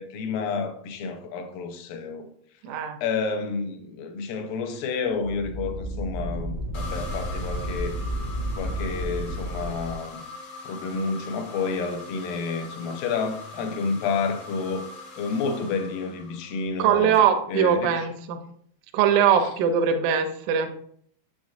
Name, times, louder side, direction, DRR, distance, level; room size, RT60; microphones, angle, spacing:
voice 1, 0.0-2.3 3.0-8.0 8.6-10.2 10.6-14.9 15.2-17.2 17.5-18.1 19.4-19.5, left 4 dB, 80° left, 2.4 m, -30 dB
voice 2, 2.6-3.0 16.8-18.4 18.9-20.7, right 8 dB, 85° right, 1.7 m, -21 dB
sound 1, 5.1-9.9, right 1 dB, 45° right, 0.5 m, -32 dB
sound 2, 6.7-16.7, left 3 dB, 65° left, 1.2 m, -42 dB
7.0 x 6.2 x 2.5 m
omnidirectional pair, 4.2 m